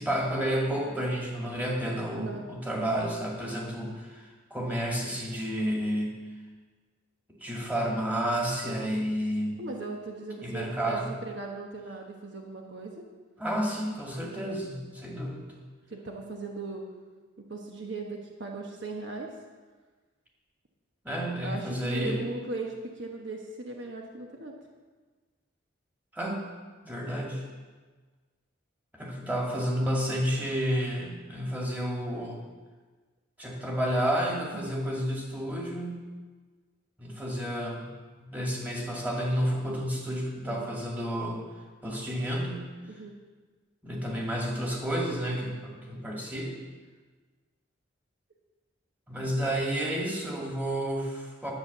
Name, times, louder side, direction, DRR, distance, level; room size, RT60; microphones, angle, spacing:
voice 1, 0.0-6.2 7.4-9.6 10.4-11.1 13.4-15.5 21.0-22.2 26.1-26.4 26.8-27.4 28.9-32.4 33.4-36.1 37.0-37.9 38.2-41.4 41.8-42.7 43.8-46.5 49.1-51.5, equal, 10° right, -3 dB, 2.3 m, -31 dB
voice 2, 9.6-13.1 15.9-16.8 17.4-19.3 21.4-24.5 34.5-34.7 40.5-40.7 42.9-43.1 45.4-45.5, right 3 dB, 65° right, 1 dB, 1.3 m, -38 dB
10.5 x 8.6 x 6.7 m, 1.4 s
head